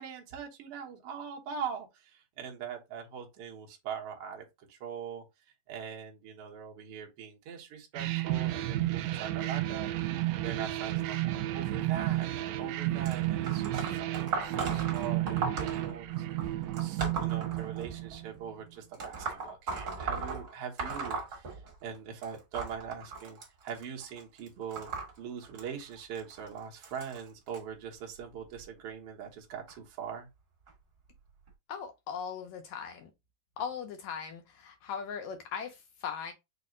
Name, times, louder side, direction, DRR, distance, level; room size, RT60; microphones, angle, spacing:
voice 1, 0.0-9.9 10.4-12.3 12.6-24.9 25.2-30.3, right 7 dB, 65° right, 1.4 m, -42 dB
sound 1, 7.9-18.5, right 15 dB, 80° right, 1.8 m, -32 dB
sound 2, 13.0-18.2 18.9-22.0 22.2-27.6 28.4-28.6 29.7-29.8 30.7-30.8 31.5-31.6, right 4 dB, 50° right, 1.2 m, -38 dB
voice 2, 31.7-33.1 33.6-36.3, left 7 dB, 80° left, 1.7 m, -39 dB
5.9 x 2.1 x 3.7 m
omnidirectional pair, 3.9 m